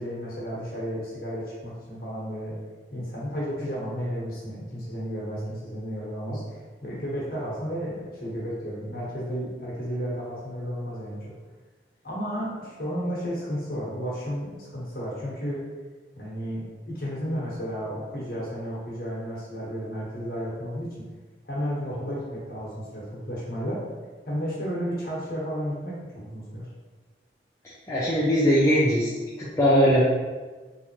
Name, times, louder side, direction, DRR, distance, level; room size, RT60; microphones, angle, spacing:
voice 1, 0.0-2.6 2.9-6.4 6.8-11.2 12.0-15.6 16.1-21.0 21.4-23.8 24.2-26.7, equal, 55° left, -7 dB, 1.3 m, -32 dB
voice 2, 27.9-29.1 29.4-30.0, equal, 15° left, -8 dB, 0.5 m, -20 dB
3.6 x 2.8 x 3.0 m, 1.3 s
head